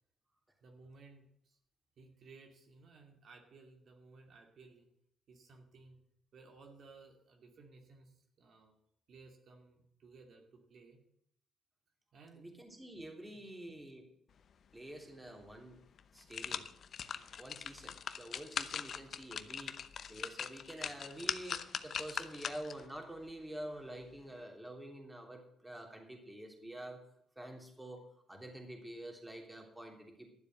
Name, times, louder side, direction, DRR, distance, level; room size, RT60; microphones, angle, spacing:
voice 1, 0.6-1.6 2.0-4.9 5.3-6.0 6.3-8.8 9.1-11.0 12.1-12.6 13.3-13.5, right 3 dB, 60° right, 2 dB, 2.4 m, -58 dB
voice 2, 12.3-14.1 14.7-15.8 16.1-16.7 17.4-19.8 20.1-27.0 27.3-28.0 28.3-30.3, right 1 dB, 10° right, 2 dB, 3.3 m, -47 dB
sound 1, 15.4-15.5 16.0-22.9 23.3-23.4, left 7 dB, 55° left, 0.8 m, -41 dB
12.5 x 7.5 x 7.8 m, 0.73 s
cardioid pair, 85°, 0 cm